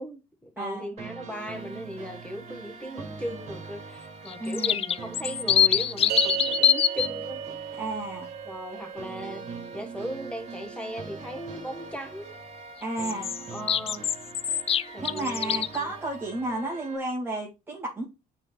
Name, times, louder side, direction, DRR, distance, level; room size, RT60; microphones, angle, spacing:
voice 1, 0.0-7.6 8.4-12.3 13.5-14.1 14.9-15.9, equal, 5° left, 1.5 m, -37 dB
voice 2, 0.6-0.9 4.4-4.8 7.8-8.3 12.8-13.3 15.0-18.1, right 2 dB, 15° right, 2.2 m, -32 dB
sound 1, 1.0-17.0, right 4 dB, 40° right, 2.3 m, -43 dB
sound 2, 4.3-7.1 13.0-15.8, left 9 dB, 35° left, 0.4 m, -24 dB
sound 3, 6.1-12.6, right 11 dB, 70° right, 0.9 m, -37 dB
9.0 x 4.6 x 2.4 m
cardioid pair, 110°, 17 cm